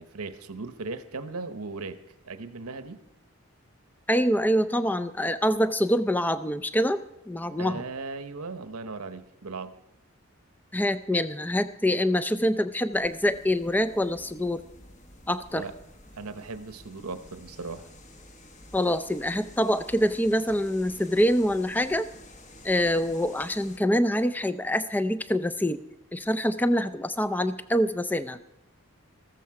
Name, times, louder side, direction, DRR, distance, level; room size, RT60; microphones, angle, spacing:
voice 1, 0.0-2.0 2.2-3.0 7.6-9.7 15.5-15.7 16.2-17.9, right 3 dB, 85° right, 10 dB, 0.9 m, -37 dB
voice 2, 4.1-7.0 7.3-7.8 10.7-14.6 15.3-15.6 18.7-22.1 22.6-25.8 26.1-28.4, equal, 10° left, 12 dB, 0.4 m, -25 dB
sound 1, 12.9-23.8, left 1 dB, 30° left, 1.0 m, -50 dB
14.5 x 13.5 x 4.7 m, 0.91 s
head